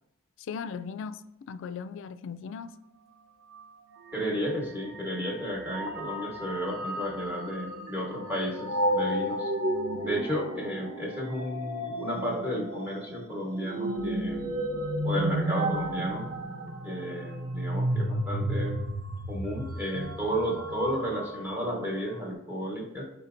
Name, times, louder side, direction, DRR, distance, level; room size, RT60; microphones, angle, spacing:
voice 1, 0.4-2.8, left 6 dB, 65° left, 0.3 m, -38 dB
sound 1, 3.5-3.6 4.1-22.3, right 1 dB, 80° right, 0.7 m, -33 dB
voice 2, 4.1-9.5 10.0-14.5 15.0-16.3 16.8-18.8 19.3-23.0, equal, 10° right, 1.1 m, -33 dB
4.8 x 4.3 x 2.5 m
head